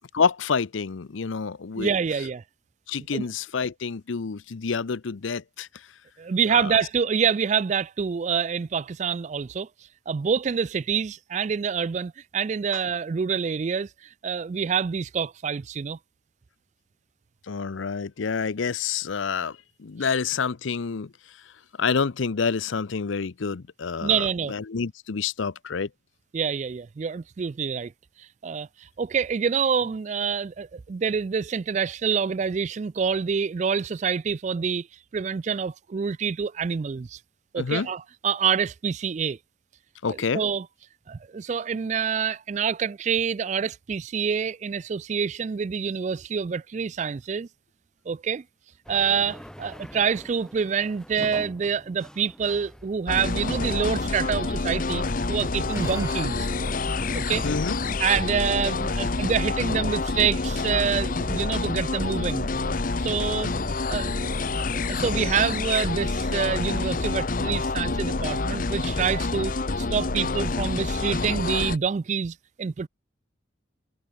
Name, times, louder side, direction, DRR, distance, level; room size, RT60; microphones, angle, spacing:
voice 1, 0.1-1.9 2.9-5.9 6.5-6.7 17.5-21.1 21.8-25.9 37.6-37.9 40.0-40.4 57.4-57.8, left 5 dB, 75° left, 0.6 m, -28 dB
voice 2, 1.8-2.4 3.1-3.3 6.2-9.7 10.1-13.9 14.2-16.0 20.0-20.1 24.0-24.5 26.3-27.9 28.2-34.9 35.1-37.2 37.5-39.4 40.1-40.7 41.1-47.5 48.1-48.4 48.9-56.5 57.1-57.5 58.0-62.5 63.0-63.5 63.9-64.2 64.6-72.9, right 6 dB, 35° right, 0.3 m, -27 dB
sound 1, 48.8-65.5, equal, 5° left, 3.1 m, -47 dB
sound 2, 53.1-71.8, left 3 dB, 45° left, 0.8 m, -27 dB
Fast Ferventia Barrel Piano Glissando, 55.5-62.0, right 2 dB, 15° right, 3.6 m, -50 dB
head